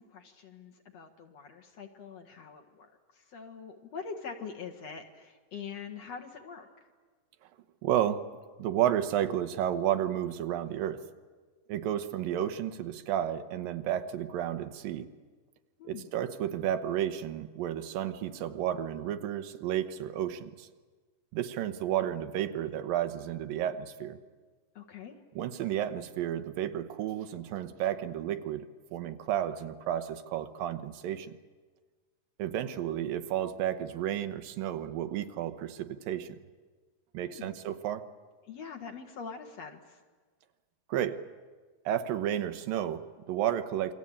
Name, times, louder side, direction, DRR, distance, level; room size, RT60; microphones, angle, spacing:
voice 1, 0.0-6.9 15.8-16.1 24.7-25.2 37.2-37.6 38.4-40.0, left 6 dB, 55° left, 3 dB, 2.6 m, -44 dB
voice 2, 7.8-8.2 8.6-11.0 11.7-15.1 15.8-20.7 21.3-24.2 25.4-31.3 32.4-36.4 37.1-38.0 40.9-41.2 41.9-43.9, right 11 dB, 85° right, 10 dB, 2.8 m, -32 dB
27.5 x 23.0 x 8.7 m, 1.4 s
omnidirectional pair, 3.9 m